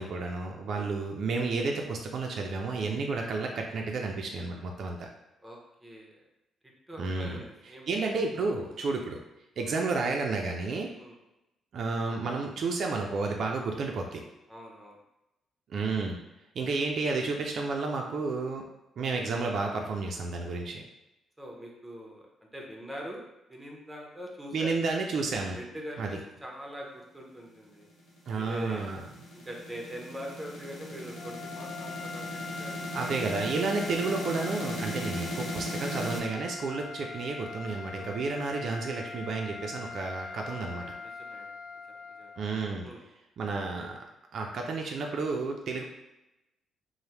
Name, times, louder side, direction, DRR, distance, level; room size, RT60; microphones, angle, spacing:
voice 1, 0.0-5.1 7.0-7.4 7.9-9.2 9.6-10.9 11.7-14.2 15.7-16.2 16.6-18.6 19.0-20.8 24.5-25.6 26.0-26.2 28.3-29.1 32.9-40.8 42.4-42.9 43.4-44.0 44.3-45.8, right 3 dB, 55° right, 1 dB, 0.3 m, -31 dB
voice 2, 5.4-6.2 6.9-8.1 9.6-9.7 11.0-11.1 14.5-15.0 21.4-22.3 22.5-23.2 23.5-24.8 25.5-27.9 28.4-28.9 29.5-32.7 38.0-38.4 40.3-41.5 42.1-42.3 42.8-43.0, equal, 10° right, -1 dB, 0.5 m, -43 dB
sound 1, 28.1-36.2, equal, 80° left, 0.8 m, -37 dB
sound 2, 31.1-42.6, left 5 dB, 60° left, 0.3 m, -42 dB
3.2 x 2.0 x 2.8 m, 0.91 s
cardioid pair, 130°, 0 cm